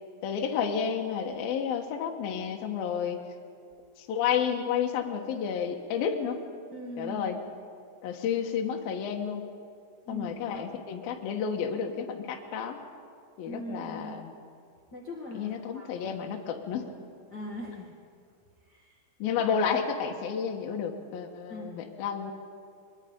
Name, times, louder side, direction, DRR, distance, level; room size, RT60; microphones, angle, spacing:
voice 1, 0.2-3.2 4.0-6.4 7.0-7.4 8.0-9.5 10.1-12.8 13.4-14.3 15.3-16.9 19.2-22.3, left 7 dB, 65° left, 2 dB, 2.6 m, -31 dB
voice 2, 6.7-7.3 10.0-10.7 13.4-14.2 14.9-16.1 17.3-17.9 18.6-19.0 21.5-21.7, equal, 45° left, -2 dB, 1.3 m, -41 dB
22.5 x 22.5 x 5.3 m, 2.2 s
omnidirectional pair, 5.5 m